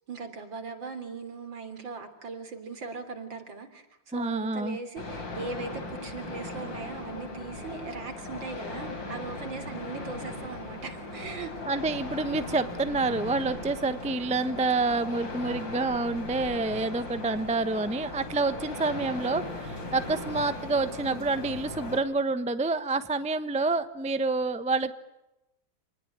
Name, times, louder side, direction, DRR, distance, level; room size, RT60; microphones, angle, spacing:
voice 1, 0.1-11.5, right 4 dB, 70° right, 8 dB, 4.1 m, -39 dB
voice 2, 4.1-4.8 11.7-24.9, right 3 dB, 5° right, 11 dB, 0.7 m, -28 dB
sound 1, 5.0-22.0, left 2 dB, 70° left, 4.6 m, -38 dB
28.0 x 20.0 x 9.4 m, 0.95 s
omnidirectional pair, 2.1 m